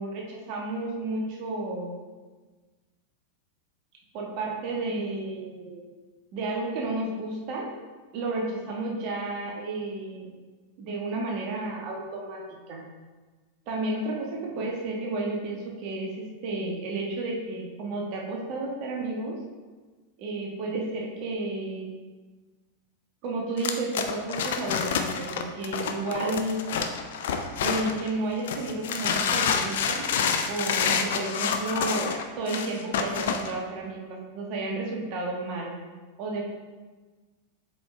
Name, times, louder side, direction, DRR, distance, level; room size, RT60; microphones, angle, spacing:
voice 1, 0.0-1.9 4.1-5.8 6.3-7.7 8.1-10.3 10.8-12.8 13.7-19.4 20.2-21.9 23.2-26.6 27.6-30.1 30.5-35.7 36.2-36.4, right 2 dB, 45° right, -1 dB, 1.4 m, -32 dB
sound 1, 23.6-28.1 28.5-33.5, left 6 dB, 55° left, 0.6 m, -28 dB
7.7 x 5.0 x 3.4 m, 1.3 s
figure-of-eight pair, 90°, 0 cm